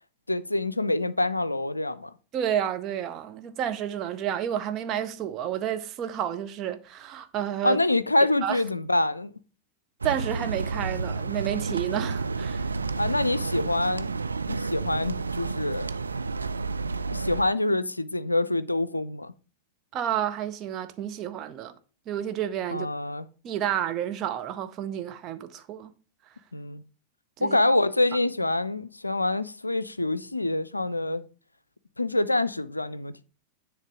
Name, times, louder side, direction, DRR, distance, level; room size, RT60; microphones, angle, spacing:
voice 1, 0.3-2.1 7.6-9.3 13.0-14.1 14.5-16.0 17.1-19.3 22.7-23.3 26.5-26.8 27.4-31.3 32.0-33.2, left 2 dB, 85° left, 0.4 m, -26 dB
voice 2, 2.3-7.8 8.4-8.6 10.0-12.8 19.9-21.8 22.1-22.9 23.4-25.9 27.4-27.6, right 10 dB, 35° right, 0.8 m, -30 dB
sound 1, 10.0-17.4, right 4 dB, 75° right, 0.3 m, -30 dB
10.0 x 3.4 x 5.0 m
figure-of-eight pair, 90°, 0 cm